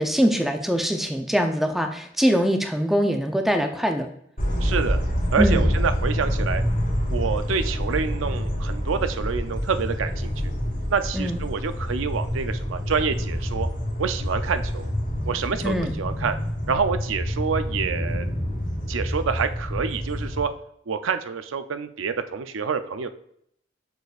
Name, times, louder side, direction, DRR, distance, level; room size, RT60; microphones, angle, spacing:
voice 1, 0.0-4.1 5.4-5.7 11.1-11.4 15.6-15.9, equal, ahead, 5 dB, 0.5 m, -23 dB
sound 1, 4.4-20.4, equal, 40° left, 2.2 m, -27 dB
voice 2, 4.6-5.0 5.3-6.6 7.1-10.5 10.9-13.7 14.0-14.9 15.3-16.4 16.7-18.3 18.9-20.5 20.9-23.1, right 5 dB, 85° right, 10 dB, 0.5 m, -27 dB
6.6 x 6.6 x 2.4 m, 0.70 s
head